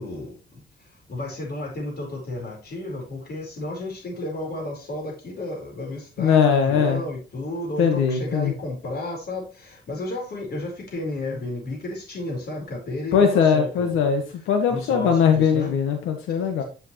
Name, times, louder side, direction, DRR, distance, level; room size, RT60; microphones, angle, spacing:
voice 1, 0.0-14.0 14.7-15.7 16.3-16.6, left 2 dB, 55° left, 0 dB, 4.4 m, -33 dB
voice 2, 6.2-7.0 7.8-8.5 13.1-16.6, left 6 dB, 90° left, 6 dB, 1.6 m, -20 dB
9.9 x 7.5 x 3.1 m, 0.31 s
cardioid pair, 90°, 20 cm